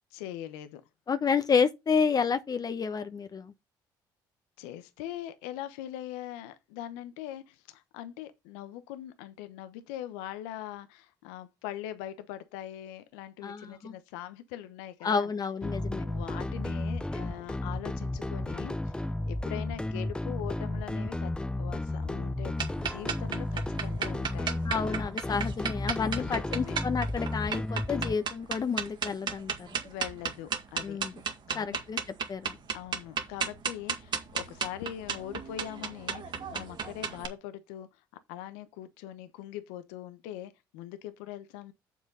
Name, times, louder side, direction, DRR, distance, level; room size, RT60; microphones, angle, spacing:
voice 1, 0.1-0.8 4.6-15.3 15.7-24.6 26.2-26.8 29.8-31.0 31.5-31.8 32.7-36.2 36.5-38.0 38.3-41.7, left 12 dB, 80° left, 0.9 m, -42 dB
voice 2, 1.1-3.5 13.4-13.9 15.0-16.0 24.6-29.7 30.8-31.1 31.5-32.0 32.3-32.6, left 6 dB, 40° left, 1.0 m, -30 dB
sound 1, 15.6-28.1, left 1 dB, 10° left, 0.6 m, -33 dB
sound 2, 22.6-37.3, right 6 dB, 45° right, 2.2 m, -34 dB
7.2 x 5.9 x 5.5 m
hypercardioid pair, 60°, 10 cm